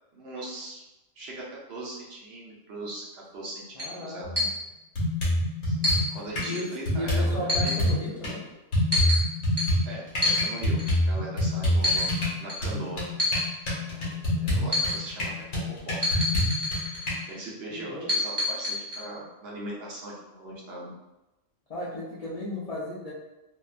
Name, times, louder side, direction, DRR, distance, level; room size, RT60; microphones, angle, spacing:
voice 1, 0.1-0.8 1.2-4.3 5.7-7.8 9.8-12.1 12.4-13.0 13.9-16.4 17.3-20.9, right 1 dB, 60° right, -4 dB, 0.8 m, -40 dB
voice 2, 3.8-4.5 6.5-8.4 17.7-18.1 21.7-23.1, left 1 dB, 55° left, -8 dB, 0.4 m, -35 dB
sound 1, 3.8-3.9 4.4-4.5 5.8-6.0 6.4-6.6 7.5-7.9 8.9-9.2 9.6-9.7 10.2-10.4 10.8-11.0 11.8-12.1 12.5-12.6 13.2-13.4 14.7-15.0 16.0-17.3 18.1-19.0, left 2 dB, 25° right, 0.6 m, -26 dB
sound 2, 4.2-4.4 5.0-6.5 6.9-8.3 8.7-17.1, left 1 dB, 85° left, 1.3 m, -27 dB
2.8 x 2.2 x 2.4 m, 0.99 s
omnidirectional pair, 1.3 m